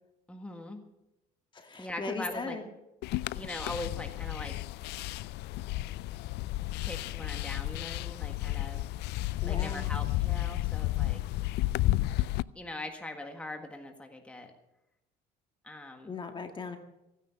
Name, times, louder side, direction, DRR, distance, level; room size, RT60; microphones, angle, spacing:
voice 1, 0.3-0.8 1.8-2.6 3.3-4.6 6.8-8.8 9.4-11.2 12.5-14.5 15.6-16.1, left 2 dB, 5° left, 4 dB, 1.6 m, -41 dB
voice 2, 1.5-2.6 9.4-9.8 16.1-16.8, left 4 dB, 30° left, 5 dB, 1.8 m, -38 dB
sound 1, 3.0-12.4, left 17 dB, 80° left, 0.4 m, -32 dB
16.0 x 9.8 x 7.0 m, 0.91 s
cardioid pair, 110°, 17 cm